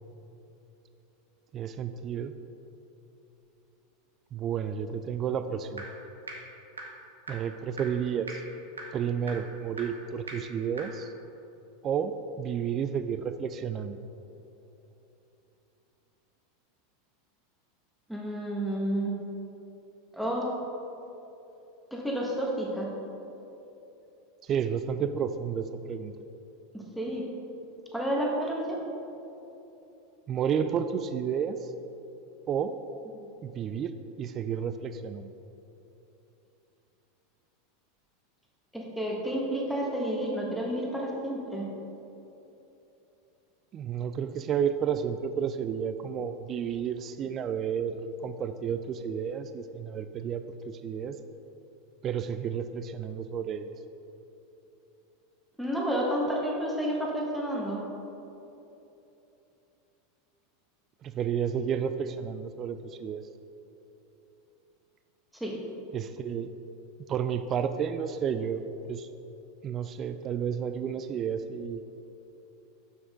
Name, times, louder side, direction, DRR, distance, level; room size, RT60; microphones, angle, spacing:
voice 1, 1.5-2.3 4.3-5.8 7.3-8.4 8.9-11.1 11.8-14.0 24.4-26.1 30.3-31.7 32.5-32.7 33.4-33.9 34.2-35.3 43.7-51.2 52.0-53.7 61.0-63.2 65.9-66.5 67.1-69.1 69.6-71.8, right 7 dB, 35° right, 10 dB, 0.3 m, -31 dB
sound 1, 5.8-5.9 6.3-6.4 6.8-6.9 7.3-7.4 7.8-7.9 8.3-8.4 8.8-8.9 9.3-9.4 9.8-9.9 10.3-10.4 10.8-10.9, right 3 dB, 90° right, 1.0 m, -38 dB
voice 2, 18.1-19.1 20.1-20.5 21.9-22.9 26.7-27.2 27.9-28.8 33.1-33.3 38.7-41.7 55.6-57.8 65.4-65.5, right 1 dB, ahead, -3 dB, 1.5 m, -30 dB
7.2 x 5.9 x 3.7 m, 3.0 s
hypercardioid pair, 90°, 0 cm